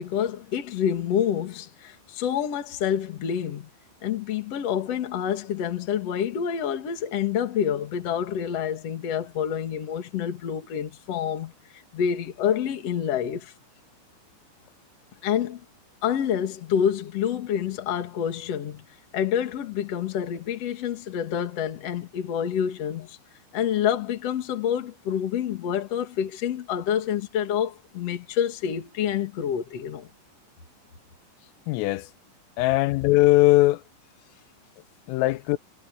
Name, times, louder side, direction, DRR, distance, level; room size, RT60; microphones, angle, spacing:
voice 1, 0.0-3.7 4.0-13.5 15.2-15.6 16.0-18.8 19.1-23.2 23.5-30.1, left 9 dB, 45° left, 2.3 m, -27 dB
voice 2, 31.7-32.1 32.6-33.8 35.1-35.6, left 18 dB, 90° left, 3.4 m, -20 dB
omnidirectional pair, 5.8 m